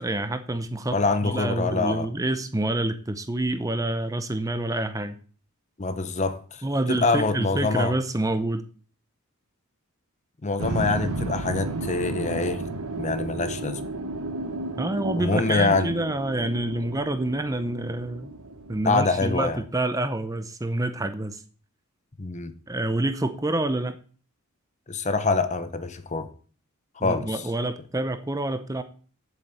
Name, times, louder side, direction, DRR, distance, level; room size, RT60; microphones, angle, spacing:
voice 1, 0.0-5.2 6.6-8.6 14.8-18.3 18.7-21.4 22.7-24.0 27.0-28.8, right 1 dB, 15° right, 0.7 m, -27 dB
voice 2, 0.9-2.1 5.8-6.6 6.9-7.9 10.4-12.7 13.0-13.8 15.2-15.9 18.8-19.6 22.2-22.5 24.9-26.3 27.0-27.4, left 3 dB, 30° left, 0.9 m, -25 dB
sound 1, 10.6-19.5, right 2 dB, 80° right, 1.2 m, -33 dB
8.2 x 7.2 x 8.0 m
head